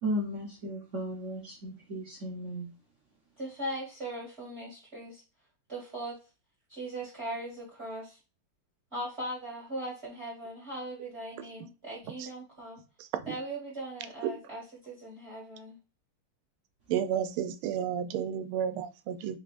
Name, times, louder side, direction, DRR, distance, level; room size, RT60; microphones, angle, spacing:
voice 1, 0.0-2.7, equal, 55° right, 0.9 m, -35 dB
voice 2, 3.4-5.2 5.7-6.2 6.7-8.2 8.9-12.8 13.3-15.8, right 1 dB, 35° right, 1.4 m, -39 dB
voice 3, 16.9-19.4, right 9 dB, 90° right, 1.5 m, -31 dB
4.7 x 3.5 x 2.4 m
omnidirectional pair, 2.3 m